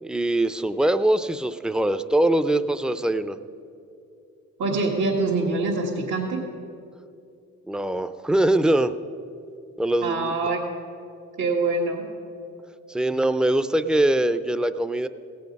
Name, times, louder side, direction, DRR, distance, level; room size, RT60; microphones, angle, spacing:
voice 1, 0.0-3.4 7.7-8.9 9.8-10.3 12.9-15.1, right 1 dB, 5° right, 11 dB, 0.4 m, -22 dB
voice 2, 4.6-6.4 10.0-10.6 11.4-12.0, right 3 dB, 85° right, -5 dB, 1.7 m, -24 dB
17.0 x 8.5 x 5.2 m, 2.6 s
cardioid pair, 90°, 30 cm